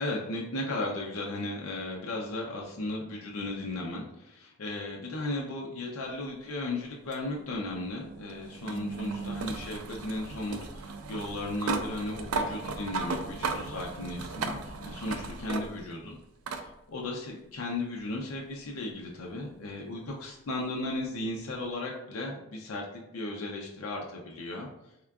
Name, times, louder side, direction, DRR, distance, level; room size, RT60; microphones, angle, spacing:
voice 1, 0.0-16.2 16.9-24.7, left 2 dB, 85° left, -1 dB, 0.5 m, -35 dB
sound 1, 7.1-16.0 16.5-16.7 18.0-18.1 21.0-21.1, right 4 dB, 85° right, 0.4 m, -36 dB
3.6 x 3.5 x 2.3 m, 0.85 s
head